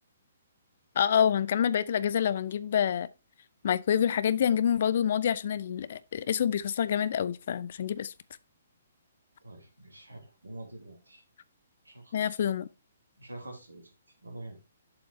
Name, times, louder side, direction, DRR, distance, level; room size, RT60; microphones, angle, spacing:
voice 1, 1.0-3.1 3.6-8.1 12.1-12.7, left 9 dB, 50° left, 0.5 m, -27 dB
voice 2, 9.4-11.2 11.8-12.4 13.2-13.9 14.2-14.6, right 1 dB, 80° right, 2.5 m, -46 dB
7.3 x 5.2 x 4.5 m
figure-of-eight pair, 125°, 0 cm